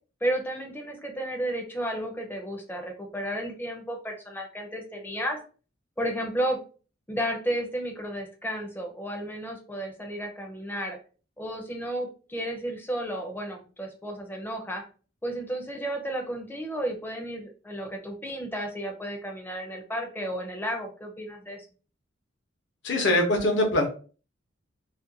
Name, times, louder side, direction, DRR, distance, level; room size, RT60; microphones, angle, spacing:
voice 1, 0.2-5.4 6.0-6.6 7.1-11.0 11.4-14.8 15.2-21.7, right 1 dB, 10° left, 2 dB, 0.5 m, -32 dB
voice 2, 22.8-23.9, left 1 dB, 65° left, 2 dB, 0.7 m, -22 dB
2.5 x 2.1 x 2.6 m, 0.37 s
head